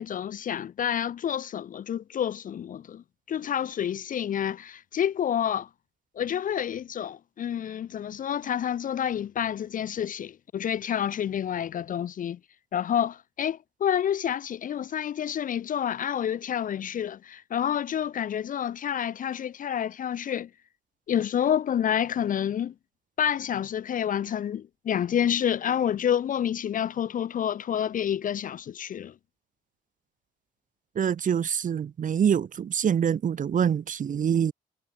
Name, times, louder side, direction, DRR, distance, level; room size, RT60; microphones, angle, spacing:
voice 1, 0.0-5.7 6.2-12.4 12.7-20.5 21.1-22.7 23.2-29.1, left 9 dB, 45° left, 0.5 m, -28 dB
voice 2, 30.9-34.5, right 8 dB, 45° right, 1.1 m, -25 dB
cardioid pair, 135°, 19 cm